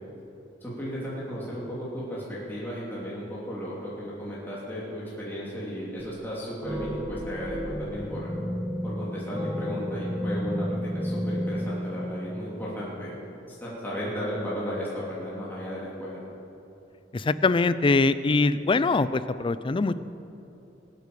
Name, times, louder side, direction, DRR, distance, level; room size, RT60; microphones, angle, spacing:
voice 1, 0.6-8.3 8.8-13.1 13.5-16.2, equal, 10° left, -8 dB, 2.8 m, -35 dB
sound 1, 6.0-6.4 6.6-13.4, equal, 10° right, 1.0 m, -32 dB
voice 2, 17.1-20.0, left 3 dB, 30° left, 15 dB, 0.4 m, -23 dB
21.0 x 8.3 x 6.7 m, 2.9 s
head